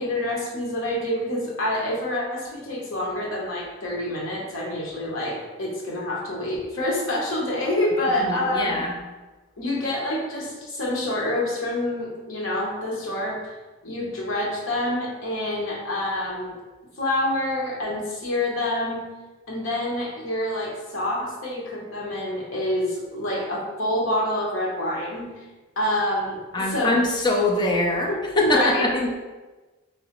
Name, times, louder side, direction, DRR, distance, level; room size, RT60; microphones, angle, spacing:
voice 1, 0.0-8.8 9.6-13.5 13.8-16.5 17.0-19.0 19.5-25.3 25.8-26.4 26.7-27.0 28.1-28.8, left 1 dB, 75° left, -3 dB, 0.9 m, -27 dB
voice 2, 8.2-9.0 26.5-29.1, left 1 dB, 20° left, 0 dB, 0.4 m, -23 dB
3.1 x 2.8 x 2.9 m, 1.2 s
head